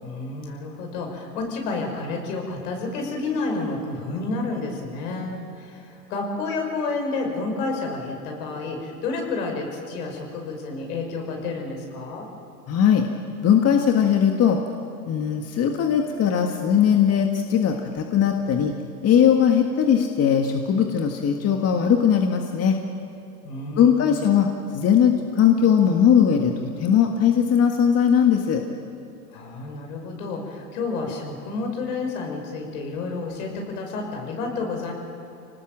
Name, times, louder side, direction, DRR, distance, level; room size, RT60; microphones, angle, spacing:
voice 1, 0.0-12.3 23.4-24.2 29.3-34.9, left 3 dB, 65° left, 2 dB, 6.0 m, -30 dB
voice 2, 12.7-13.0 13.4-14.6 15.1-18.7 19.0-22.8 23.8-24.5 24.7-28.6, left 8 dB, 30° left, 4 dB, 1.7 m, -19 dB
26.5 x 19.0 x 7.6 m, 2.7 s
hypercardioid pair, 105°, 49 cm